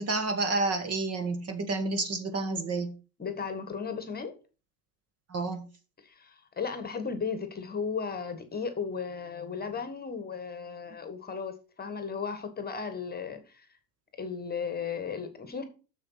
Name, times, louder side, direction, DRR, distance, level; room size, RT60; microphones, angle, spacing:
voice 1, 0.0-2.9 5.3-5.7, right 3 dB, 30° right, 1.5 m, -30 dB
voice 2, 3.2-4.3 6.0-13.7 14.2-15.6, left 5 dB, 20° left, 1.5 m, -35 dB
6.9 x 6.5 x 5.6 m
hypercardioid pair, 90°, 49 cm